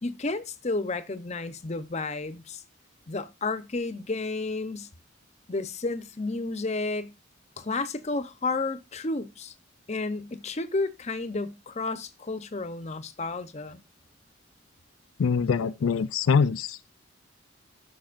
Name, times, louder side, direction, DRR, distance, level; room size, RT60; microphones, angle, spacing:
voice 1, 0.0-2.6 3.1-4.9 5.5-7.1 7.6-9.5 9.9-13.8, left 3 dB, 35° left, 0.7 m, -31 dB
voice 2, 15.2-16.9, left 5 dB, 80° left, 0.4 m, -24 dB
13.0 x 6.0 x 2.5 m
head